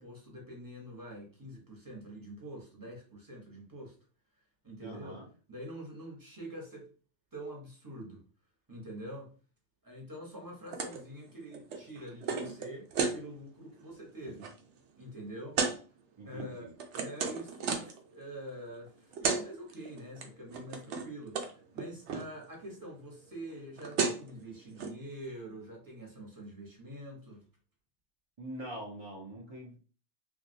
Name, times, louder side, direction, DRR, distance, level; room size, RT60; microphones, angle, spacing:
voice 1, 0.0-3.9 4.6-5.2 5.5-6.9 7.3-8.2 8.7-9.3 9.8-14.5 15.0-15.6 16.2-17.8 18.1-27.4, right 1 dB, 20° right, 0.9 m, -45 dB
voice 2, 4.8-5.3 16.2-16.7 28.4-29.8, right 1 dB, 40° right, 0.4 m, -43 dB
sound 1, 10.7-11.0 11.3-13.2 13.7-13.9 14.2-14.5 15.5-15.8 16.4-18.0 18.9-19.0 19.1-19.4 19.7-20.2 20.5-21.1 21.3-21.5 21.8-22.2 23.5-23.6 23.8-24.3 24.8-24.9, right 5 dB, 75° right, 0.9 m, -33 dB
3.2 x 2.6 x 2.7 m
omnidirectional pair, 1.2 m